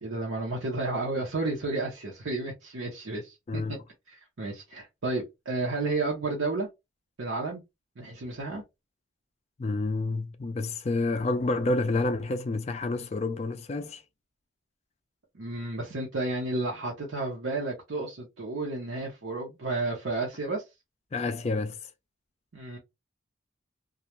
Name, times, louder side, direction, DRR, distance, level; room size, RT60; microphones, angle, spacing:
voice 1, 0.0-3.8 4.1-6.7 7.2-7.6 8.0-8.6 15.3-20.6 22.5-22.8, right 2 dB, 75° right, 0.7 m, -32 dB
voice 2, 3.5-3.8 9.6-14.0 21.1-21.8, left 2 dB, 30° left, 0.3 m, -29 dB
2.3 x 2.1 x 2.9 m
head